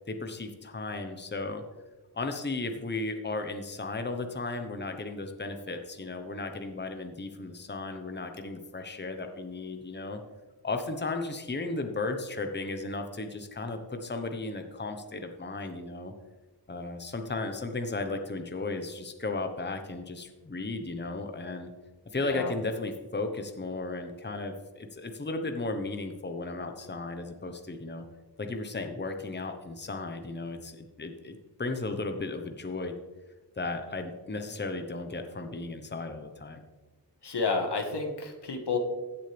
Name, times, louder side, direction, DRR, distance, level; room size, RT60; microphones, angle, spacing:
voice 1, 0.1-1.6 2.1-10.2 10.6-16.1 16.7-21.7 22.1-28.0 28.4-32.9 33.6-36.6, left 3 dB, 25° left, 6 dB, 1.1 m, -35 dB
voice 2, 22.2-22.5 37.2-38.8, left 4 dB, 80° left, 4 dB, 1.7 m, -30 dB
15.5 x 7.5 x 3.4 m, 1.2 s
cardioid pair, 55°, 40 cm